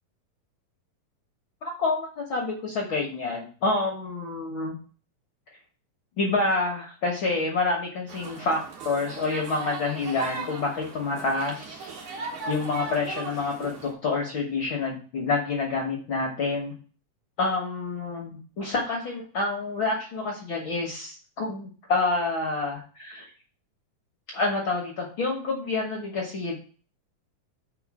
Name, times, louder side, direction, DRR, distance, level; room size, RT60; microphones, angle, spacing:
voice 1, 1.8-4.7 6.2-8.6 8.8-12.2 12.5-16.7 17.4-23.3 24.3-26.6, left 3 dB, 70° left, -1 dB, 1.2 m, -28 dB
sound 1, 8.1-13.9, right 4 dB, 55° right, 1.6 m, -38 dB
4.7 x 4.7 x 6.1 m, 0.40 s
omnidirectional pair, 4.0 m